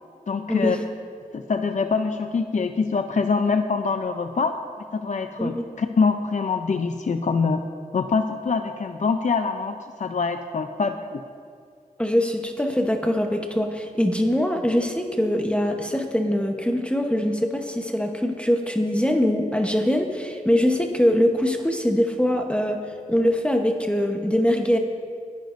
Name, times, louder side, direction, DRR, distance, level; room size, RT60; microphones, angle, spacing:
voice 1, 0.3-0.8 1.3-4.6 4.9-7.6 7.9-11.2, left 4 dB, 55° left, 6 dB, 0.6 m, -24 dB
voice 2, 12.0-22.8 23.1-24.8, equal, 5° left, 3 dB, 1.0 m, -22 dB
22.5 x 10.5 x 2.6 m, 2.3 s
cardioid pair, 50°, 15 cm